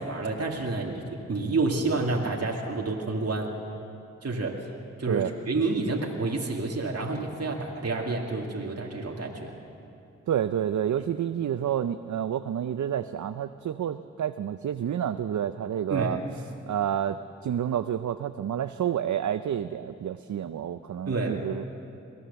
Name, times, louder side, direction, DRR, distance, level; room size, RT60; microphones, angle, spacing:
voice 1, 0.0-3.5 4.2-4.7 5.0-9.5 11.0-11.1 15.9-16.2 21.1-21.4, right 3 dB, 55° right, -1 dB, 2.4 m, -29 dB
voice 2, 10.3-16.2 16.7-21.7, right 9 dB, 70° right, 11 dB, 0.6 m, -29 dB
23.0 x 16.5 x 7.0 m, 2.6 s
cardioid pair, 45°, 30 cm